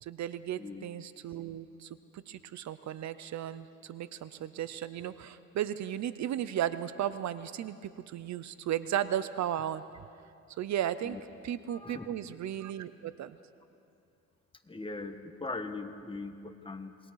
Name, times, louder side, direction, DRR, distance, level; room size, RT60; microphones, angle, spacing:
voice 1, 0.0-9.8 10.6-11.2 11.4-13.4, right 11 dB, 65° right, 14 dB, 0.7 m, -35 dB
voice 2, 11.7-12.1 14.7-17.0, left 3 dB, 15° left, 6 dB, 1.5 m, -40 dB
27.5 x 21.0 x 4.8 m, 2.5 s
cardioid pair, 90°, 30 cm